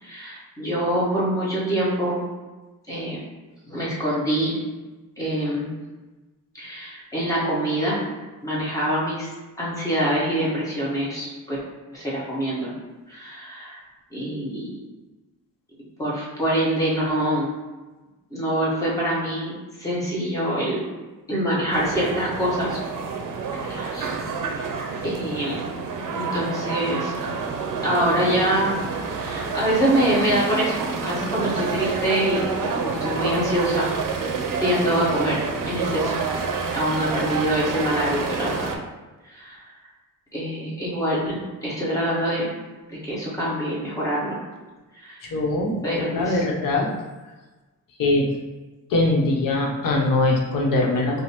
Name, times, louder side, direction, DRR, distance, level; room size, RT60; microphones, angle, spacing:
voice 1, 0.0-2.2 2.9-3.2 3.7-4.6 5.2-5.7 6.5-8.0 8.4-9.3 9.6-11.6 11.9-12.7 13.1-13.8 14.1-14.7 16.0-17.5 18.3-19.5 19.8-20.8 21.3-22.8 23.6-24.1 25.0-25.7 26.1-27.1 27.8-28.8 29.1-33.9 34.1-36.1 36.7-38.7 39.3-39.6 40.3-42.5 42.9-44.4 44.9-45.2 45.8-46.4, equal, 10° left, -7 dB, 1.1 m, -25 dB
sound 1, 21.7-38.7, right 5 dB, 75° right, 0.5 m, -28 dB
voice 2, 45.2-45.7 46.1-46.9 48.0-48.3 48.9-51.2, left 2 dB, 80° left, -1 dB, 0.8 m, -21 dB
5.1 x 2.1 x 2.9 m, 1.2 s
wide cardioid pair, 140°, 33 cm